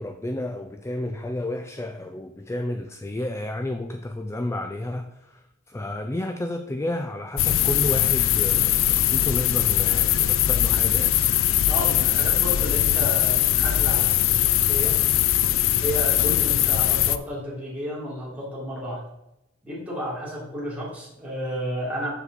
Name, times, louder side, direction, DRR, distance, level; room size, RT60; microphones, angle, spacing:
voice 1, 0.0-11.2, left 1 dB, 15° left, 6 dB, 0.4 m, -31 dB
sound 1, 7.4-17.2, left 12 dB, 80° left, 0.4 m, -21 dB
voice 2, 11.7-15.0 15.8-19.0 19.6-22.1, equal, 5° right, -7 dB, 3.4 m, -32 dB
7.0 x 7.0 x 4.1 m, 0.88 s
head